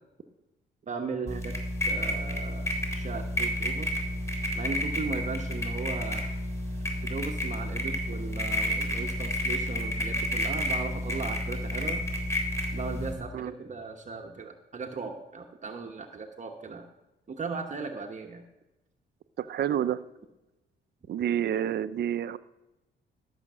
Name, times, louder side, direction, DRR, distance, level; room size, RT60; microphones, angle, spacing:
voice 1, 0.9-1.5 1.9-3.9 4.6-6.4 7.0-12.0 12.7-16.9 17.3-18.4, right 4 dB, 35° right, 3 dB, 1.0 m, -37 dB
sound 1, 1.3-13.1, equal, 15° left, 3.5 m, -30 dB
voice 2, 19.4-20.0 21.1-22.4, right 10 dB, 55° right, 14 dB, 0.6 m, -29 dB
13.0 x 6.5 x 6.1 m, 1.0 s
cardioid pair, 90°, 20 cm